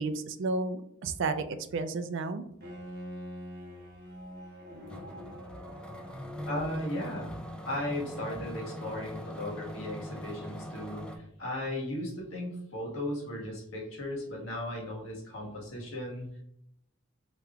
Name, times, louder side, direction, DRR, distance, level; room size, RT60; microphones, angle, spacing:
voice 1, 0.0-2.4, right 3 dB, 65° right, 10 dB, 0.4 m, -32 dB
Bowed string instrument, 2.6-7.4, equal, 50° right, 1.2 m, -45 dB
sound 1, 4.9-11.2, equal, 5° left, 0.3 m, -42 dB
voice 2, 6.5-7.4 7.6-16.4, left 1 dB, 85° left, -3 dB, 1.4 m, -36 dB
4.9 x 3.0 x 2.3 m, 0.76 s
head